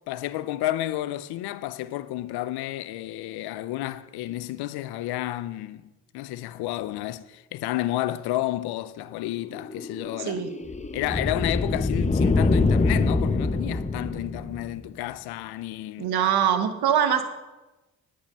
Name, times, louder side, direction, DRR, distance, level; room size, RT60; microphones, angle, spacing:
voice 1, 0.1-5.8 6.1-10.4 10.9-16.1, left 15 dB, 85° left, 0.6 m, -31 dB
sound 1, 9.3-14.9, left 3 dB, 20° left, 1.0 m, -25 dB
voice 2, 10.2-10.5 16.0-17.2, right 9 dB, 80° right, 1.2 m, -23 dB
10.5 x 9.0 x 5.5 m
supercardioid pair, 45°, 37 cm